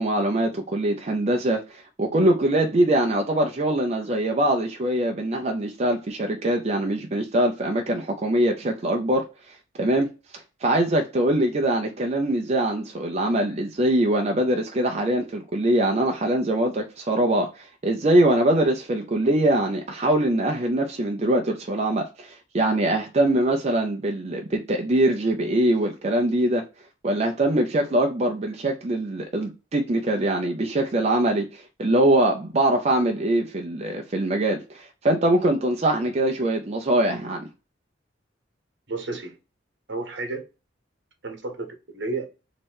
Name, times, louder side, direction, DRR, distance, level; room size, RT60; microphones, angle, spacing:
voice 1, 0.0-26.6 27.0-37.5, right 1 dB, 35° right, 0.5 m, -23 dB
voice 2, 38.9-39.4 39.9-40.5 41.2-42.3, right 3 dB, 65° right, 1.1 m, -32 dB
3.2 x 2.9 x 4.6 m
head